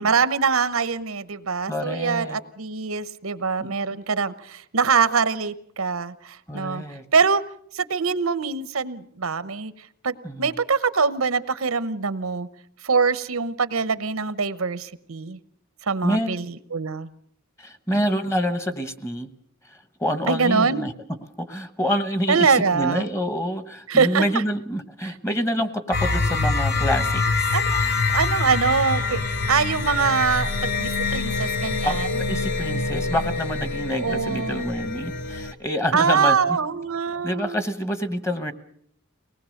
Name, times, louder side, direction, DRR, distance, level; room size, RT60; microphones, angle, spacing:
voice 1, 0.0-6.8 7.1-7.4 7.7-9.7 10.0-12.5 12.8-15.4 15.9-17.1 20.3-20.8 22.3-23.1 23.9-24.2 27.5-29.2 29.5-32.2 33.9-34.7 35.9-37.6, right 5 dB, 85° right, 14 dB, 0.9 m, -23 dB
voice 2, 1.7-2.4 3.6-3.7 6.5-7.0 10.2-10.5 16.0-16.5 17.6-19.3 20.0-20.9 21.4-27.5 31.8-36.6 37.2-38.5, equal, 15° left, 11 dB, 1.2 m, -27 dB
sound 1, 25.9-35.5, left 3 dB, 50° left, 1.1 m, -25 dB
23.5 x 19.5 x 6.5 m, 0.65 s
head